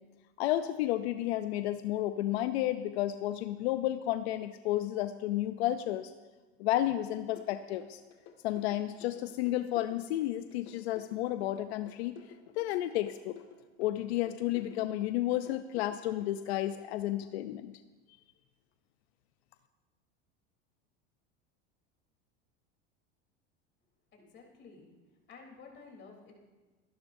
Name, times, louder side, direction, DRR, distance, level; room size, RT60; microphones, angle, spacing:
voice 1, 0.4-6.1 6.6-8.0 8.4-12.1 12.6-13.4 13.8-17.7, left 14 dB, 85° left, 10 dB, 0.6 m, -32 dB
sound 1, 7.4-16.7, left 10 dB, 55° left, 1.9 m, -53 dB
voice 2, 24.1-24.9 25.3-26.3, left 4 dB, 35° left, 0 dB, 3.4 m, -52 dB
26.0 x 12.0 x 2.7 m, 1.2 s
supercardioid pair, 130°, 31 cm